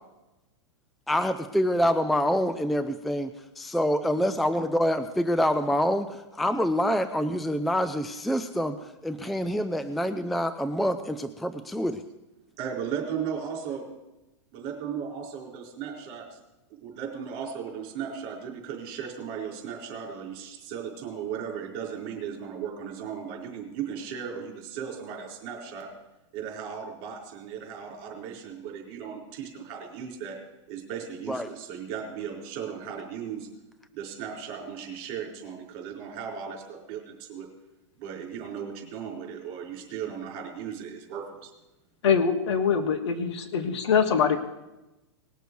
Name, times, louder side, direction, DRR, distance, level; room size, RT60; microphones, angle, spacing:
voice 1, 1.1-3.3 3.7-8.8 9.0-12.0 31.3-31.5, equal, ahead, 9 dB, 0.4 m, -26 dB
voice 2, 12.6-13.9 14.5-16.4 16.8-25.9 26.3-30.4 30.7-33.5 33.9-37.5 38.0-41.5, right 7 dB, 40° right, 0 dB, 4.3 m, -36 dB
voice 3, 42.0-44.4, left 6 dB, 65° left, 8 dB, 1.4 m, -23 dB
20.0 x 6.8 x 4.6 m, 0.99 s
hypercardioid pair, 145°, 15 cm